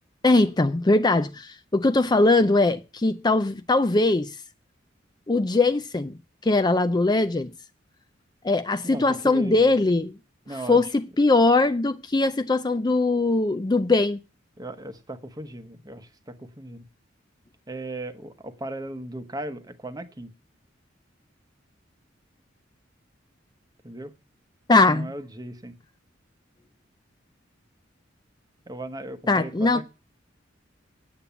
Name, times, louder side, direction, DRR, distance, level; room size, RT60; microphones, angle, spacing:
voice 1, 0.2-4.4 5.3-6.2 6.4-7.5 8.4-10.1 10.7-14.2 24.7-25.1 29.3-29.8, left 2 dB, 20° left, 0.5 m, -21 dB
voice 2, 8.9-9.7 10.5-10.8 14.6-16.8 17.7-20.3 23.8-24.1 24.9-25.7 28.7-29.8, right 1 dB, 20° right, 1.0 m, -37 dB
8.7 x 8.6 x 6.9 m
head